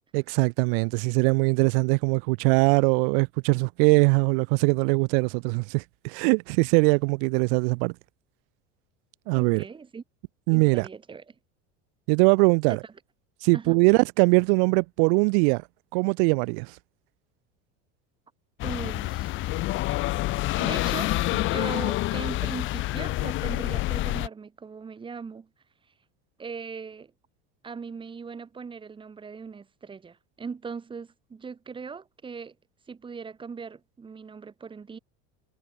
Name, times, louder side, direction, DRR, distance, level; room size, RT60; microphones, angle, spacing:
voice 1, 0.1-7.9 9.3-9.6 10.5-10.9 12.1-12.8 13.4-15.6 15.9-16.8, right 38 dB, 70° right, 1.2 m, -22 dB
voice 2, 9.3-10.0 10.5-11.3 12.7-12.9 13.5-13.8 18.6-19.3 20.6-25.5 26.4-27.1 27.6-32.5 32.9-35.0, right 5 dB, 15° right, 5.0 m, -39 dB
sound 1, 18.6-24.3, left 18 dB, 40° left, 1.0 m, -27 dB
cardioid pair, 155°, 29 cm